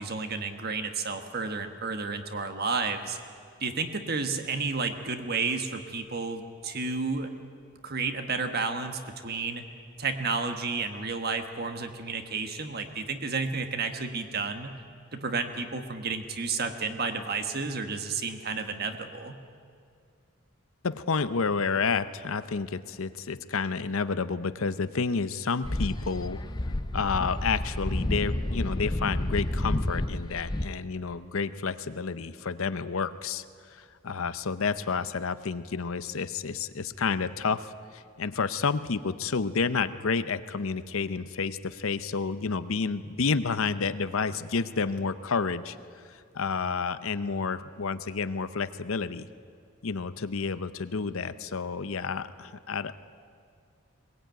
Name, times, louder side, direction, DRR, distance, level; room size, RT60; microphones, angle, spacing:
voice 1, 0.0-3.2 3.6-7.3 7.8-9.6 10.0-14.7 15.1-19.4, right 4 dB, 45° right, 7 dB, 1.5 m, -31 dB
voice 2, 20.8-26.4 26.9-33.4 33.7-45.8 46.1-49.3 49.8-52.9, left 5 dB, 70° left, 13 dB, 0.7 m, -30 dB
sound 1, 25.6-30.7, left 1 dB, 20° left, 0.6 m, -30 dB
21.5 x 19.0 x 9.2 m, 2.3 s
head